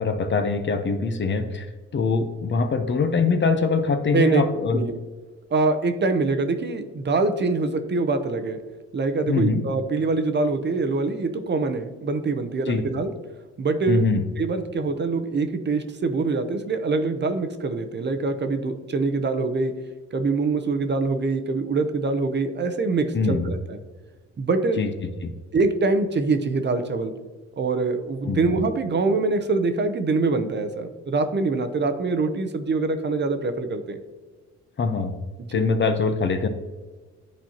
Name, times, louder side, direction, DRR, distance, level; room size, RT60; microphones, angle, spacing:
voice 1, 0.0-1.7 1.9-4.8 9.3-9.6 12.7-12.8 13.9-14.2 23.1-23.5 24.8-25.3 28.3-28.5 34.8-35.1 35.5-36.5, left 4 dB, 40° left, 8 dB, 0.7 m, -23 dB
voice 2, 5.5-8.6 8.9-13.1 13.6-14.1 14.4-19.7 20.1-23.8 24.4-24.8 25.5-27.1 27.6-34.0 35.5-35.6, right 3 dB, 35° right, 8 dB, 0.7 m, -24 dB
10.5 x 4.4 x 2.9 m, 1.3 s
cardioid pair, 90°, 30 cm